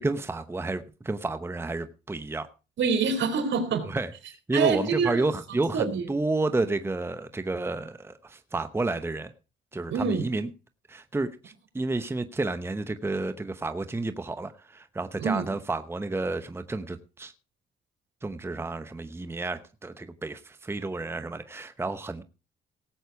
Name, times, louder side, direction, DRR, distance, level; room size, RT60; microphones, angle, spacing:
voice 1, 0.0-2.5 3.9-9.3 9.7-10.5 10.9-17.3 18.2-22.2, right 2 dB, 10° right, 0.8 m, -31 dB
voice 2, 2.8-3.8 4.5-5.3 5.7-6.1 9.9-10.2 15.2-15.5, right 5 dB, 70° right, 3.6 m, -26 dB
18.0 x 8.1 x 4.6 m
cardioid pair, 90°, 20 cm